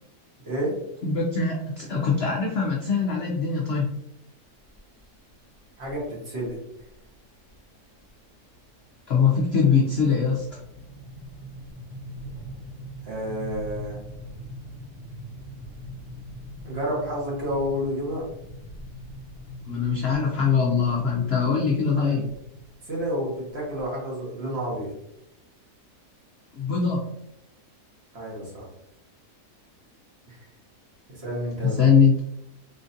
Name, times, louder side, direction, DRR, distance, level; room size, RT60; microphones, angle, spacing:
voice 1, 0.5-0.8 5.8-6.6 13.0-14.0 16.6-18.3 22.0-22.2 22.8-24.9 28.1-28.7 30.3-30.5 31.1-31.8, equal, 45° right, -4 dB, 1.2 m, -30 dB
voice 2, 1.0-3.9 9.1-10.5 19.7-22.3 26.5-27.1 31.6-32.2, left 5 dB, 70° left, -2 dB, 0.6 m, -22 dB
sound 1, 4.7-5.0 5.9-6.0 6.4-6.5 6.8-7.1 7.5-23.8, equal, 15° right, 1.2 m, -42 dB
4.1 x 2.5 x 2.5 m, 0.81 s
omnidirectional pair, 1.8 m